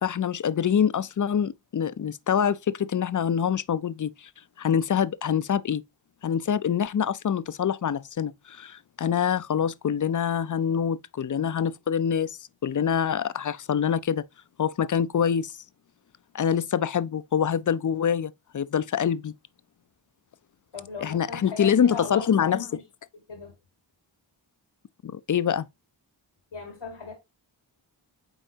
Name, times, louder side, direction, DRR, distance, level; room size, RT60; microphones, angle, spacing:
voice 1, 0.0-4.3 4.6-5.8 6.2-14.2 14.6-15.5 16.3-19.3 21.0-22.7 25.0-25.7, left 8 dB, 45° left, 0.5 m, -25 dB
voice 2, 20.7-22.8 23.1-23.5 26.5-27.1, left 4 dB, 90° left, 1.8 m, -38 dB
8.9 x 3.9 x 2.7 m
cardioid pair, 40°, 46 cm